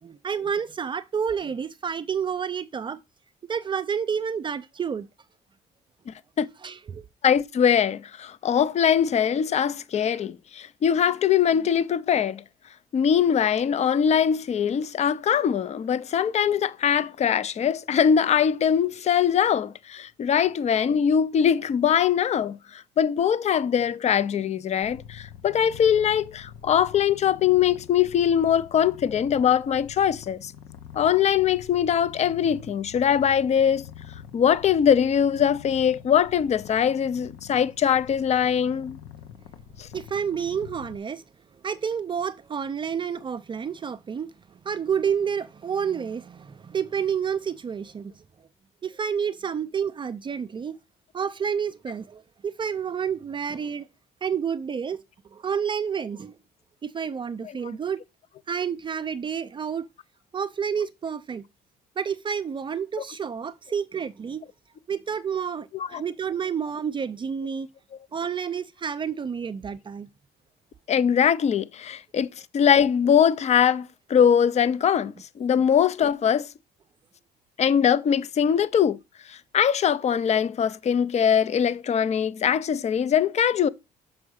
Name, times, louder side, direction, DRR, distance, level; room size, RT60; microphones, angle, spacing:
voice 1, 0.0-3.0 3.5-5.1 6.6-7.1 39.9-41.2 41.6-44.3 44.6-48.1 48.8-50.8 51.1-53.9 54.2-55.0 55.3-56.3 56.8-58.0 58.5-59.9 60.3-61.4 62.0-64.4 64.9-67.7 68.1-70.1, right 7 dB, 30° right, 0.5 m, -29 dB
voice 2, 6.1-6.5 7.2-12.4 12.9-30.5 31.0-33.8 34.3-39.0 39.8-39.9 57.6-57.8 65.7-66.0 70.9-72.3 72.5-76.5 77.6-79.0 79.3-83.7, left 8 dB, 40° left, 0.6 m, -22 dB
Purr, 24.8-41.0, left 8 dB, 80° left, 0.9 m, -45 dB
6.1 x 4.8 x 6.3 m
cardioid pair, 110°, 17 cm